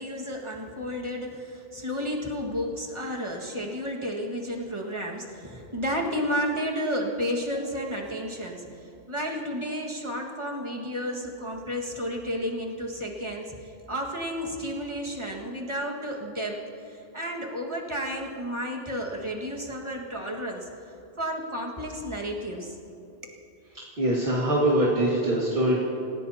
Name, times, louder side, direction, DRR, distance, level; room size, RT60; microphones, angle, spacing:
voice 1, 0.0-20.7 21.2-22.8, equal, 30° right, -1 dB, 1.9 m, -32 dB
voice 2, 24.0-25.8, right 1 dB, 60° right, -6 dB, 2.3 m, -23 dB
28.0 x 16.5 x 2.9 m, 2.9 s
omnidirectional pair, 1.1 m